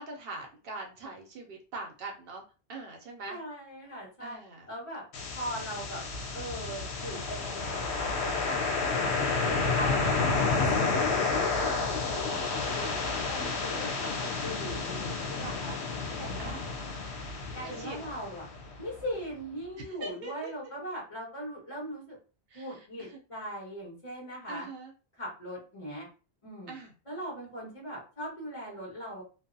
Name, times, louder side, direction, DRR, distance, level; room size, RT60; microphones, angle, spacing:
voice 1, 0.0-2.4 2.7-3.4 4.2-4.7 11.9-12.4 15.3-15.7 16.4-16.7 17.6-18.1 19.8-20.5 22.5-23.2 24.5-24.9 26.7-26.9, right 3 dB, 65° right, 1 dB, 0.7 m, -43 dB
voice 2, 3.2-4.4 4.7-5.0 5.3-6.0 6.3-9.1 9.4-15.8 16.2-16.6 17.5-18.5 18.8-22.2 22.5-24.7 25.2-26.1 26.4-26.7 27.1-29.2, equal, 30° left, -4 dB, 1.2 m, -40 dB
sound 1, 5.1-19.0, left 4 dB, 80° left, 0.9 m, -30 dB
2.6 x 2.1 x 2.5 m, 0.35 s
omnidirectional pair, 1.1 m